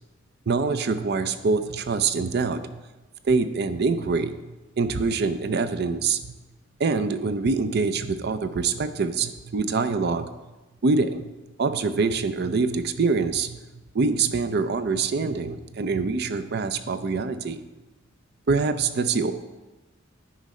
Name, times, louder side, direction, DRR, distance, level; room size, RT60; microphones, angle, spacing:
voice 1, 0.5-2.8 3.3-4.4 4.8-6.3 6.8-10.3 10.8-11.3 11.6-13.6 13.9-17.6 18.5-19.3, right 4 dB, 55° right, 11 dB, 0.5 m, -25 dB
10.0 x 5.1 x 4.2 m, 1.1 s
head